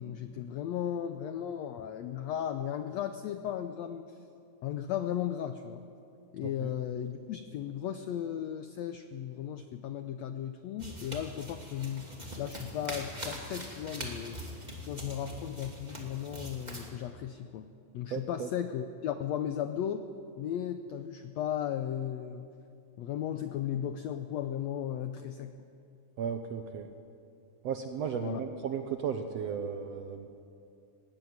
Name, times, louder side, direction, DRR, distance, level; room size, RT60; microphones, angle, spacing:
voice 1, 0.0-4.1 4.6-5.8 6.3-14.4 14.8-17.7 17.9-20.1 20.4-22.5 23.0-25.5 28.1-28.4, left 10 dB, 90° left, 9 dB, 1.5 m, -36 dB
sound 1, 10.8-16.9, right 1 dB, 15° right, 2.3 m, -42 dB
voice 2, 18.1-18.5 26.2-26.9 27.6-30.4, right 7 dB, 70° right, 6 dB, 1.6 m, -35 dB
19.0 x 16.0 x 9.4 m, 2.6 s
omnidirectional pair, 3.9 m